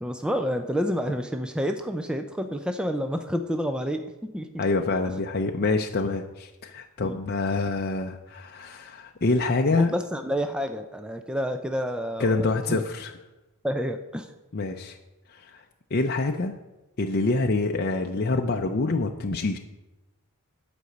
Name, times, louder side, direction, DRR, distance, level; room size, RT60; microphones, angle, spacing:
voice 1, 0.0-4.6 7.0-7.2 9.7-12.8 13.6-14.3, equal, 5° right, 6 dB, 0.5 m, -29 dB
voice 2, 4.6-9.9 12.2-13.1 14.5-15.0 15.3-15.6 15.9-16.5 17.0-19.6, left 3 dB, 45° left, 3 dB, 0.6 m, -26 dB
11.5 x 5.2 x 7.9 m, 1.0 s
head